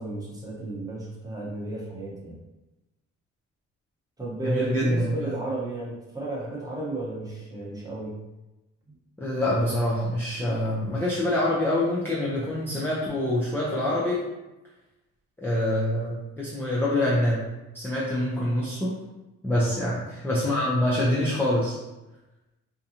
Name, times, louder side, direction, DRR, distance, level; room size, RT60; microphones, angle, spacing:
voice 1, 0.0-2.4 4.2-8.1 8.9-9.0 19.5-19.8, right 2 dB, 10° right, -5 dB, 1.0 m, -33 dB
voice 2, 4.4-5.2 9.2-14.2 15.4-17.4 17.7-18.9 19.4-21.8, left 1 dB, 5° left, -7 dB, 0.5 m, -25 dB
2.8 x 2.2 x 2.7 m, 1.0 s
cardioid pair, 90°, 30 cm